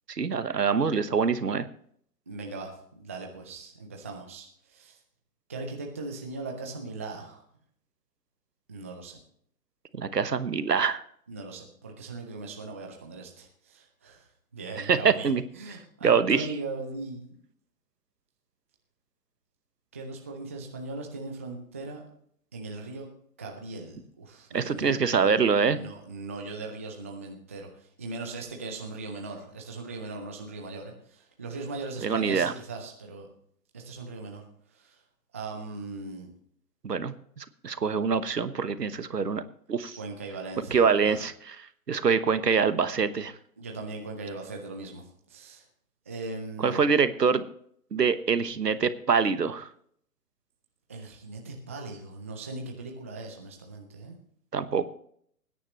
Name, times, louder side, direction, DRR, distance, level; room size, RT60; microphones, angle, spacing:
voice 1, 0.1-1.7 10.0-11.0 14.8-15.4 16.0-16.5 24.5-25.8 32.0-32.5 36.8-39.4 39.7-40.0 40.7-41.6 41.9-43.3 46.6-47.4 47.9-49.7 54.5-54.8, right 5 dB, 80° right, 13 dB, 1.1 m, -25 dB
voice 2, 2.3-5.0 5.5-7.4 8.7-9.2 11.3-14.3 14.5-17.4 19.9-22.0 22.5-23.1 23.4-33.3 33.7-34.4 34.7-35.0 35.3-36.3 40.0-41.2 43.6-45.6 46.1-46.8 50.9-54.2, right 3 dB, 10° right, 1 dB, 0.4 m, -39 dB
20.0 x 9.9 x 3.0 m, 0.64 s
figure-of-eight pair, 130°, 47 cm